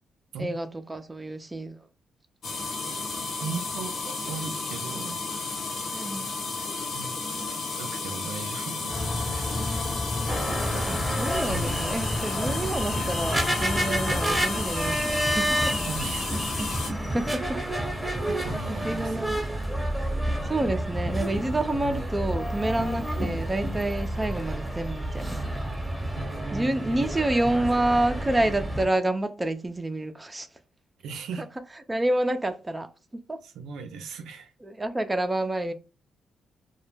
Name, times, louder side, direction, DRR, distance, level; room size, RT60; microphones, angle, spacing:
voice 1, 0.4-1.8 5.9-6.3 9.5-10.3 10.9-15.8 17.1-17.4 18.7-19.4 20.4-25.6 26.5-30.5 31.4-31.5 31.9-32.9 33.3-33.4 34.6-35.7, right 1 dB, 20° right, 0.4 m, -28 dB
sound 1, 2.4-16.9, left 4 dB, 60° left, 0.7 m, -33 dB
voice 2, 3.4-5.7 6.9-9.8 11.4-11.7 15.8-16.7 18.3-19.3 21.7-22.0 26.2-27.1 31.0-31.5 33.4-34.5, right 4 dB, 80° right, 0.4 m, -38 dB
sound 2, 8.9-14.4, left 2 dB, 25° left, 0.8 m, -32 dB
sound 3, 10.3-28.9, right 1 dB, ahead, 0.9 m, -30 dB
2.2 x 2.0 x 3.1 m
supercardioid pair, 60°, 0 cm